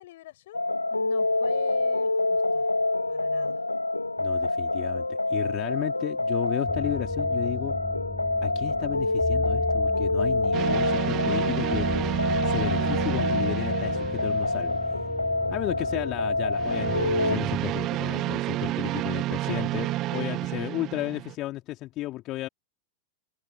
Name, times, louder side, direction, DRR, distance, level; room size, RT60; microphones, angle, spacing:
voice 1, 0.0-2.7 3.1-3.6 18.1-18.5 19.4-19.7, left 16 dB, 55° left, 7.2 m, -44 dB
sound 1, 0.5-17.4, left 2 dB, 85° left, 1.8 m, -27 dB
voice 2, 4.2-7.8 8.4-12.1 12.4-15.0 15.5-22.5, left 17 dB, 35° left, 3.4 m, -33 dB
sound 2, 6.7-17.7, left 3 dB, 10° left, 5.0 m, -37 dB
sound 3, 10.5-15.0 16.5-21.3, right 16 dB, 35° right, 0.3 m, -30 dB
figure-of-eight pair, 90°, 0 cm